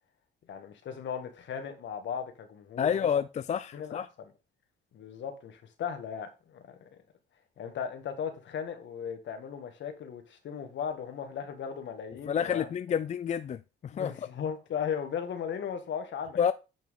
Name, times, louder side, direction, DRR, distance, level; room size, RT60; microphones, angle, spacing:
voice 1, 0.5-3.1 3.7-4.3 4.9-7.0 7.6-12.7 13.9-16.5, left 7 dB, 65° left, 1.7 m, -37 dB
voice 2, 2.8-4.1 12.3-14.1 16.4-16.5, left 8 dB, 35° left, 0.4 m, -29 dB
9.4 x 4.5 x 3.7 m
cardioid pair, 90°, 20 cm